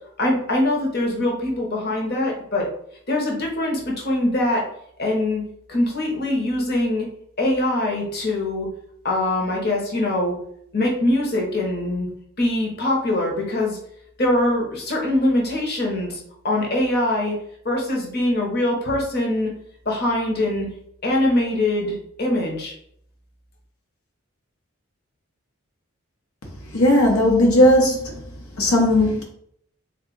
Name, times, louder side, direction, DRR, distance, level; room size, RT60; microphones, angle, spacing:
voice 1, 0.2-2.7 3.1-4.6 5.0-5.4 5.7-7.1 7.4-8.7 9.0-10.3 10.7-12.1 12.4-13.8 14.2-16.2 16.4-17.4 17.6-19.5 19.8-20.7 21.0-22.7, left 1 dB, 45° left, -1 dB, 0.9 m, -22 dB
voice 2, 26.7-28.2 28.6-29.2, left 1 dB, 80° left, 0 dB, 0.8 m, -16 dB
3.7 x 2.4 x 3.9 m, 0.68 s
head